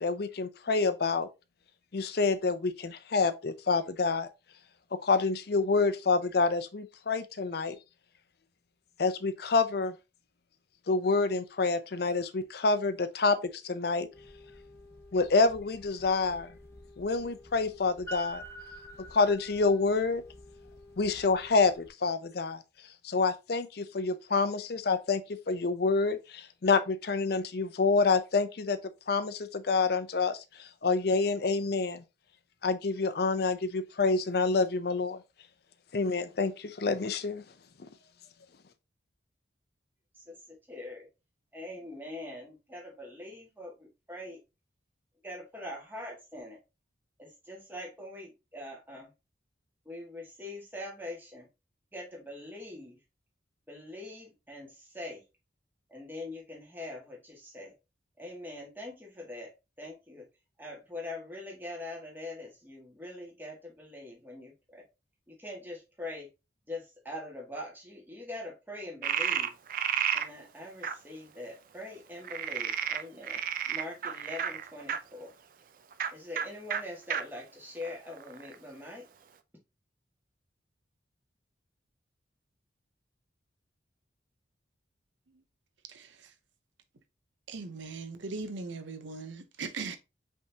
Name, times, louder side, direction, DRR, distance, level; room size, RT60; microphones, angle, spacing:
voice 1, 0.0-1.3 1.9-4.3 4.9-7.8 9.0-10.0 10.9-14.1 15.1-16.5 17.0-18.4 19.1-20.2 21.0-22.6 23.0-28.8 29.1-32.0 32.6-35.2 35.9-37.4, left 4 dB, 55° left, 0.5 m, -27 dB
sound 1, 14.1-21.9, equal, 15° left, 0.8 m, -49 dB
voice 2, 40.1-41.1 41.5-44.4 45.2-46.6 47.2-49.1 49.8-51.5 51.9-53.0 53.7-55.2 55.9-57.7 58.2-59.5 59.8-60.2 60.6-64.8 65.3-66.3 66.7-69.5 70.1-75.3 76.1-79.0, left 1 dB, 10° right, 1.6 m, -43 dB
Frog, 69.0-70.3 70.8-70.9 72.2-75.0 75.9-76.1 76.3-76.4 76.7-76.8 77.1-77.2 77.8-78.5, right 8 dB, 45° right, 0.4 m, -31 dB
voice 3, 85.9-86.3 87.5-90.0, right 4 dB, 80° right, 0.7 m, -39 dB
5.3 x 3.5 x 2.7 m
head